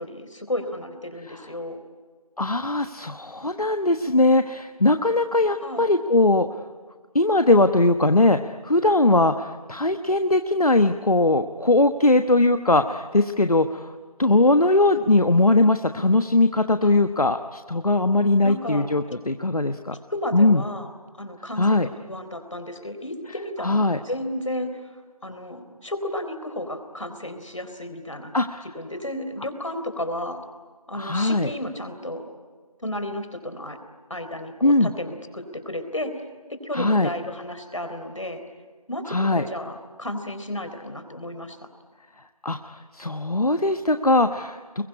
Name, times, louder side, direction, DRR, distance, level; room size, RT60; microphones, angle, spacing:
voice 1, 0.0-1.8 5.6-5.9 16.8-16.9 18.4-19.2 20.1-20.9 21.2-21.8 22.1-28.3 28.6-30.4 30.9-32.3 32.8-33.8 34.1-36.2 36.5-38.4 38.9-41.7, left 1 dB, 55° left, 8 dB, 3.9 m, -33 dB
voice 2, 2.4-6.5 7.1-13.9 14.2-19.9 20.3-20.6 21.6-21.9 23.6-24.0 28.3-28.6 31.0-31.5 34.6-34.9 36.7-37.1 39.1-39.5 42.4-44.8, left 2 dB, 75° left, 8 dB, 1.3 m, -20 dB
26.5 x 22.5 x 9.9 m, 1.4 s
figure-of-eight pair, 175°, 19 cm